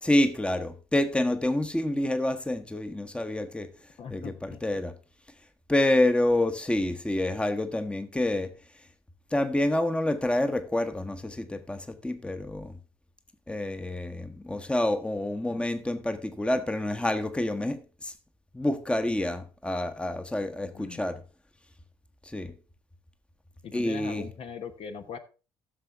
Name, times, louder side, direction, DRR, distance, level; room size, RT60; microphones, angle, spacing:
voice 1, 0.0-3.7 4.1-4.9 5.7-8.5 9.3-12.8 13.5-18.1 18.5-21.2 22.2-22.5 23.7-24.2, left 1 dB, 10° left, 1.1 m, -28 dB
voice 2, 4.0-4.6 15.5-15.7 20.6-21.0 23.6-25.2, left 5 dB, 45° left, 1.0 m, -40 dB
15.0 x 6.8 x 3.5 m
figure-of-eight pair, 45°, 13 cm